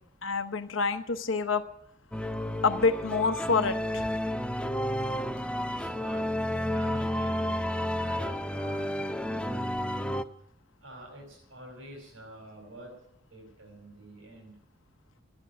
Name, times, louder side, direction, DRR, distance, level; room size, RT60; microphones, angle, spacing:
voice 1, 0.2-1.6 2.6-4.1, left 4 dB, 80° left, 9 dB, 0.9 m, -27 dB
sound 1, 2.1-10.2, equal, 5° left, 0.5 m, -31 dB
voice 2, 5.7-6.3 6.7-10.1 10.8-13.0 13.3-14.5, right 1 dB, 85° right, -1 dB, 4.7 m, -47 dB
14.5 x 9.8 x 9.0 m, 0.75 s
head